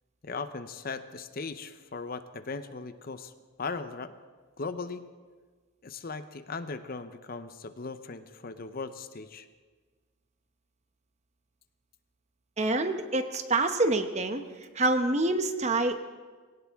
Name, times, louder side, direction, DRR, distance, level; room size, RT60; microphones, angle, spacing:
voice 1, 0.2-3.3 3.6-4.2 4.6-5.1 5.8-9.5, left 4 dB, 45° left, 11 dB, 0.7 m, -38 dB
voice 2, 12.6-14.4 14.7-16.0, right 2 dB, 35° right, 8 dB, 0.9 m, -26 dB
21.0 x 17.5 x 3.6 m, 1.5 s
head